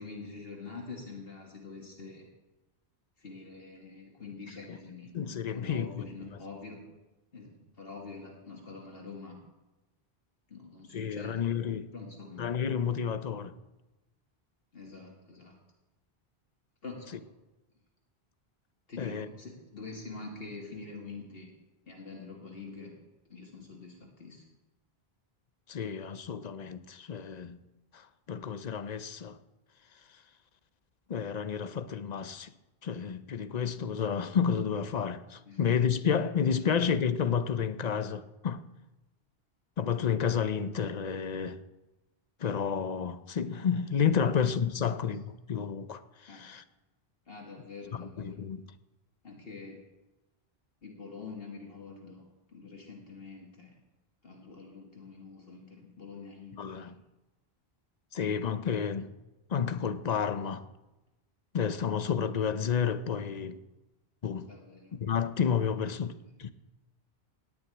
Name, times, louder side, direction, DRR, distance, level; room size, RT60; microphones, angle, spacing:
voice 1, 0.0-2.3 3.2-5.1 5.5-6.9 7.3-9.4 10.5-11.4 11.9-12.5 14.7-15.6 16.8-17.3 18.9-21.5 21.9-22.9 23.3-24.4 35.5-35.7 36.6-36.7 44.2-44.3 44.8-45.1 46.3-46.5 47.3-48.4 49.2-49.9 50.8-52.2 52.5-53.8 54.2-56.8 64.4-65.0 66.1-66.2, left 4 dB, 65° left, 2.1 m, -45 dB
voice 2, 5.1-6.4 10.9-11.9 12.4-13.5 19.0-19.3 25.7-27.6 27.9-29.4 31.1-32.5 32.8-38.6 39.8-41.6 42.4-46.6 47.9-48.6 56.6-57.0 58.1-59.1 59.5-60.7 61.5-63.6 64.2-64.5 64.9-66.5, left 7 dB, 45° left, 0.7 m, -31 dB
17.5 x 6.1 x 9.5 m
omnidirectional pair, 1.1 m